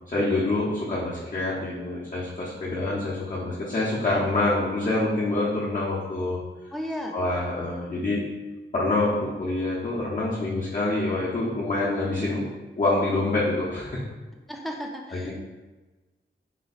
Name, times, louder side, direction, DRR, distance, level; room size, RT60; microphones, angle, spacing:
voice 1, 0.1-6.4 7.1-8.3 8.7-12.4 12.8-14.0 15.1-15.3, left 2 dB, 40° left, -7 dB, 0.7 m, -26 dB
voice 2, 6.7-7.2 14.5-15.3, equal, ahead, 0 dB, 0.5 m, -34 dB
3.9 x 2.2 x 4.0 m, 1.2 s
wide cardioid pair, 105°, 21 cm